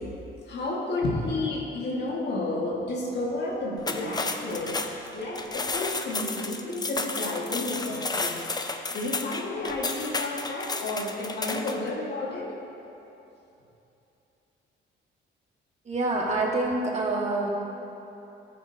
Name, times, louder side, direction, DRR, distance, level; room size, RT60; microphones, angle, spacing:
voice 1, 0.5-4.8 5.1-8.4 8.9-12.5, left 2 dB, 60° left, -3 dB, 1.8 m, -31 dB
sound 1, 3.8-11.9, left 3 dB, 20° left, 0.6 m, -32 dB
voice 2, 15.8-17.5, right 2 dB, 35° right, -2 dB, 1.7 m, -26 dB
13.5 x 8.5 x 2.8 m, 2.9 s
cardioid pair, 90°, 20 cm